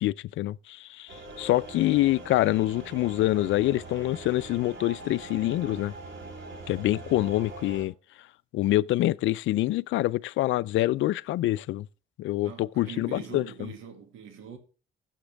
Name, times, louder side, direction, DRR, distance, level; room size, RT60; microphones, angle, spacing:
voice 1, 0.0-5.9 6.7-7.9 8.5-11.9 12.2-13.7, left 16 dB, 80° left, 0.4 m, -26 dB
sound 1, 1.1-7.8, right 2 dB, 70° right, 3.6 m, -42 dB
voice 2, 12.4-14.6, right 7 dB, 90° right, 2.2 m, -43 dB
15.0 x 7.3 x 3.4 m
cardioid pair, 90°, 20 cm